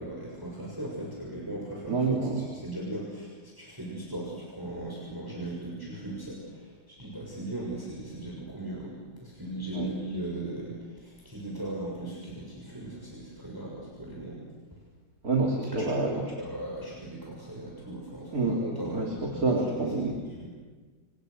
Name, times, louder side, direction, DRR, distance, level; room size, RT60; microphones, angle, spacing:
voice 1, 0.0-14.4 15.7-19.6 20.1-20.5, right 1 dB, 10° right, -3 dB, 6.5 m, -38 dB
voice 2, 1.9-2.5 9.7-9.9 15.2-16.3 18.3-18.6 18.9-20.2, right 3 dB, 40° right, 0 dB, 3.4 m, -27 dB
30.0 x 29.0 x 6.6 m, 1.4 s
omnidirectional pair, 2.3 m